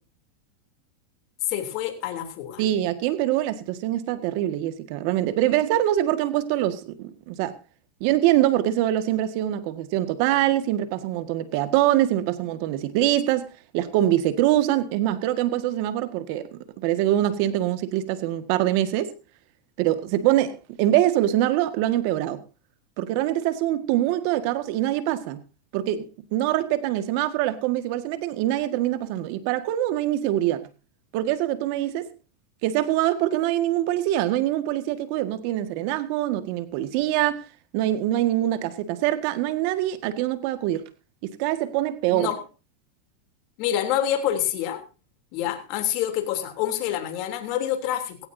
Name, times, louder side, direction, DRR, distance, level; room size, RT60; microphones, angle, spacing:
voice 1, 1.5-2.6 42.1-42.4 43.6-44.8 45.3-48.2, left 11 dB, 50° left, 3.1 m, -27 dB
voice 2, 2.6-7.5 8.0-13.5 13.7-19.1 19.8-22.4 23.0-25.4 25.7-26.0 26.3-30.6 31.1-32.1 32.6-37.4 37.7-40.9 41.2-42.3, right 13 dB, 55° right, 1.7 m, -24 dB
17.0 x 16.5 x 2.7 m
supercardioid pair, 130°, 0 cm